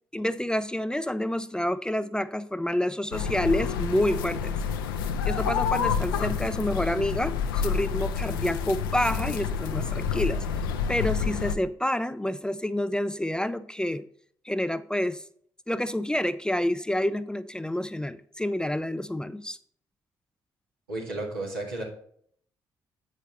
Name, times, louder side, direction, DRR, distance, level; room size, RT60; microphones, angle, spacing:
voice 1, 0.1-4.5 5.2-10.4 10.9-14.1 14.4-15.2 15.7-19.6, left 1 dB, 5° left, 0.4 m, -28 dB
sound 1, 3.1-11.6, left 6 dB, 80° left, 0.5 m, -28 dB
voice 2, 20.9-21.8, right 2 dB, 90° right, 1.9 m, -33 dB
8.3 x 5.4 x 4.1 m
hypercardioid pair, 45°, 11 cm